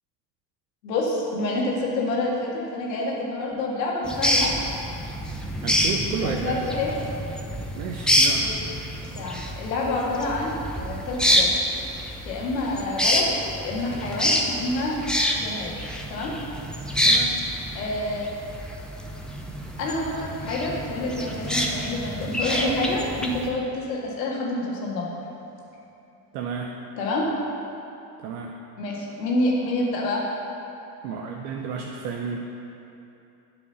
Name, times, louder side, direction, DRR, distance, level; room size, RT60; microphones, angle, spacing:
voice 1, 0.8-4.5 6.2-6.9 8.4-8.5 9.1-11.5 12.3-13.3 13.6-15.0 15.3-15.7 16.1-16.3 17.7-18.3 19.8-25.1 27.0-27.3 28.8-30.2, left 2 dB, 75° left, -3 dB, 1.9 m, -27 dB
sound 1, 4.1-23.5, equal, ahead, 0.9 m, -27 dB
voice 2, 5.6-6.6 7.8-8.5 17.0-17.4 26.3-26.7 28.2-28.5 31.0-32.4, right 6 dB, 65° right, 1 dB, 0.8 m, -31 dB
9.4 x 5.0 x 6.7 m, 2.9 s
hypercardioid pair, 65°, 50 cm